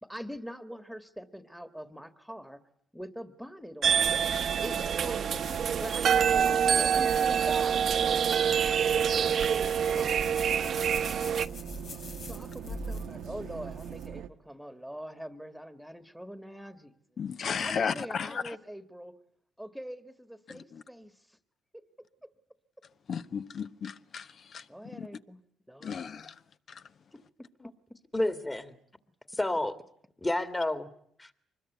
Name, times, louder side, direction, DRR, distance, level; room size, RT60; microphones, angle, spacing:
voice 1, 0.0-2.6 2.9-4.0 4.6-8.0 9.1-10.5 12.3-16.9 17.6-19.2 19.6-21.4 21.7-21.8 22.2-22.3 24.7-25.4 25.7-26.3 27.4-28.0, equal, ahead, 1.7 m, -44 dB
sound 1, 3.8-11.5, right 7 dB, 60° right, 1.0 m, -26 dB
sound 2, 4.0-14.3, right 8 dB, 80° right, 1.2 m, -41 dB
sound 3, 5.3-14.1, left 2 dB, 80° left, 7.7 m, -46 dB
voice 2, 17.2-18.6 20.5-20.8 23.1-24.6 24.9-25.1 25.8-26.3 26.7-26.8, left 6 dB, 55° left, 1.1 m, -35 dB
voice 3, 28.1-28.7 29.3-29.8 30.2-30.9 31.2-31.3, left 1 dB, 15° left, 2.1 m, -30 dB
25.0 x 21.0 x 9.3 m
cardioid pair, 90°, 0 cm